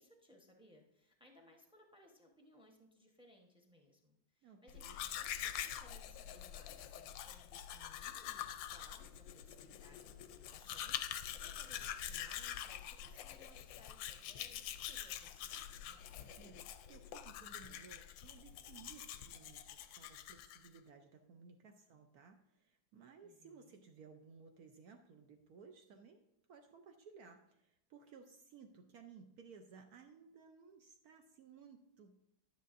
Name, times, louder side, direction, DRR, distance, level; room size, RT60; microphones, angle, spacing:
voice 1, 0.0-16.4 23.2-23.8, left 1 dB, 5° right, 1 dB, 0.6 m, -65 dB
voice 2, 4.4-5.0 16.4-26.2 26.5-32.2, right 5 dB, 65° right, 5 dB, 0.9 m, -59 dB
Domestic sounds home sounds, 4.7-20.8, left 10 dB, 90° left, 1.3 m, -46 dB
11.0 x 9.2 x 2.5 m, 0.81 s
omnidirectional pair, 2.0 m